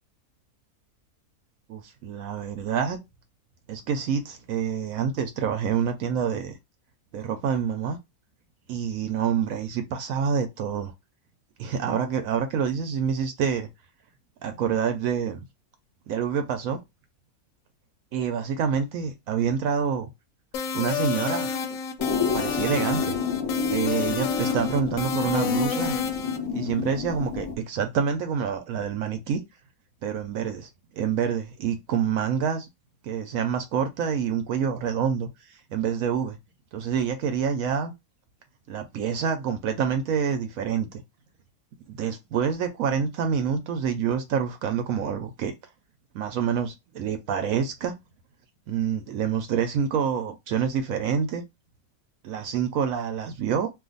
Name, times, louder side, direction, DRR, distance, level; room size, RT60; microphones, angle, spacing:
voice 1, 1.7-3.0 3.7-6.6 7.1-8.0 8.7-10.9 11.6-13.7 14.4-15.4 16.1-16.8 18.1-20.1 20.7-21.5 22.3-23.2 23.7-26.0 26.5-29.4 30.0-32.7 33.0-36.4 36.7-37.9 38.7-41.0 41.9-45.5 46.1-48.0 48.7-51.4 52.2-53.7, right 7 dB, 75° right, 1.0 m, -27 dB
sound 1, 20.5-26.4, left 6 dB, 70° left, 0.9 m, -29 dB
sound 2, 22.0-27.5, left 6 dB, 20° left, 0.9 m, -30 dB
2.5 x 2.4 x 3.8 m
omnidirectional pair, 1.6 m